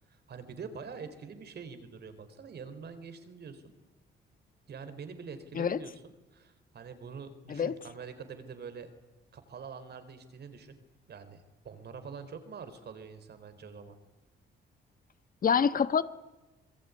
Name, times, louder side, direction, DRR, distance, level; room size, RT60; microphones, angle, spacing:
voice 1, 0.1-3.6 4.7-8.9 9.3-10.7 11.1-14.0, right 5 dB, 55° right, 4.1 m, -45 dB
voice 2, 15.4-16.0, left 7 dB, 45° left, 1.4 m, -26 dB
27.0 x 21.5 x 9.7 m
cardioid pair, 90°, 20 cm